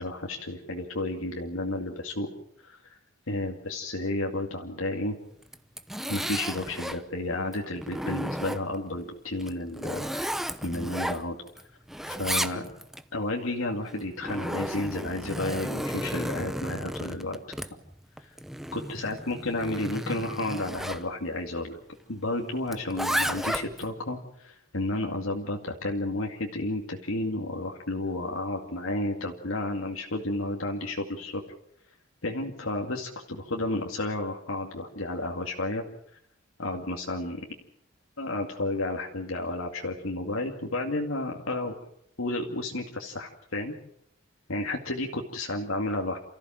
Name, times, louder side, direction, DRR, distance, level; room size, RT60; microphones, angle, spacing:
voice 1, 0.0-2.3 2.6-3.0 3.3-5.2 6.1-11.4 12.1-12.7 13.1-17.4 18.2-18.4 18.7-21.8 22.1-31.4 32.2-35.8 36.6-37.5 38.2-41.7 42.2-43.8 44.5-46.2, left 2 dB, 80° left, 1 dB, 2.3 m, -32 dB
Zipper (clothing), 5.4-7.0 7.5-8.9 9.4-11.6 11.9-13.0 13.9-21.0 22.7-23.9, equal, ahead, 0.8 m, -33 dB
29.5 x 15.0 x 7.5 m, 0.73 s
head